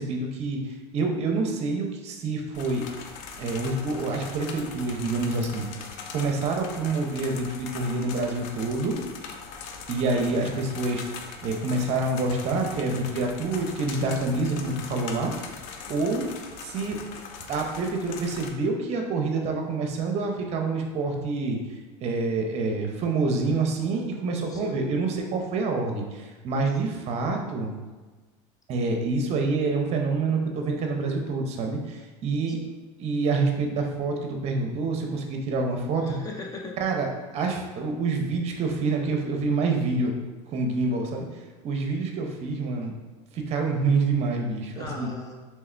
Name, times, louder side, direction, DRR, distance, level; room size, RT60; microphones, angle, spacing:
voice 1, 0.0-2.8 3.4-5.7 6.1-9.0 9.9-11.0 11.4-15.3 15.9-16.3 16.6-17.0 17.5-21.6 22.0-27.7 28.7-32.6 33.0-36.2 36.8-40.1 40.5-41.3 41.6-42.9 43.3-45.1, right 3 dB, 45° right, 2 dB, 0.7 m, -27 dB
sound 1, 2.5-18.5, left 5 dB, 60° left, 0.5 m, -41 dB
voice 2, 10.1-10.6 24.5-24.9 26.8-27.0 32.5-32.8 36.0-36.8 44.7-45.3, left 3 dB, 25° left, 1 dB, 0.7 m, -40 dB
3.5 x 3.2 x 3.3 m, 1.3 s
supercardioid pair, 115°, 15 cm